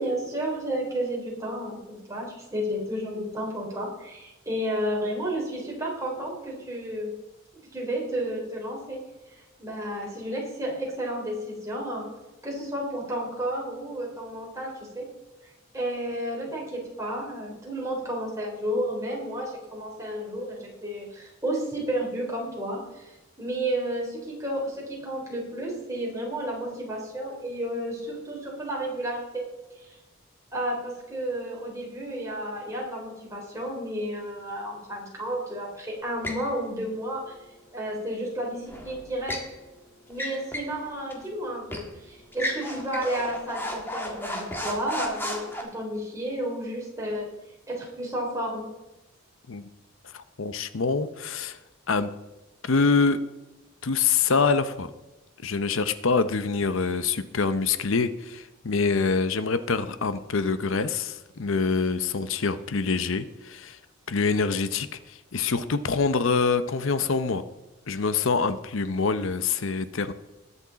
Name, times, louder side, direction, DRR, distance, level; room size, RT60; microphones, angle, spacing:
voice 1, 0.0-7.1 7.5-9.0 9.6-12.0 12.4-15.1 15.7-29.5 29.8-30.0 30.5-37.4 37.7-39.4 40.1-47.3 47.7-48.7, right 1 dB, 15° right, -2 dB, 3.3 m, -32 dB
sound 1, 36.2-36.5 38.7-39.5 40.1-40.8 41.1-41.2 41.7-41.9 42.3-45.6, left 1 dB, 10° left, 1.7 m, -34 dB
voice 2, 50.1-51.6 51.9-52.1 52.6-53.2 53.8-54.9 55.4-63.8 64.1-67.4 67.9-70.1, left 4 dB, 65° left, 12 dB, 0.7 m, -25 dB
20.5 x 7.2 x 4.0 m, 1.1 s
head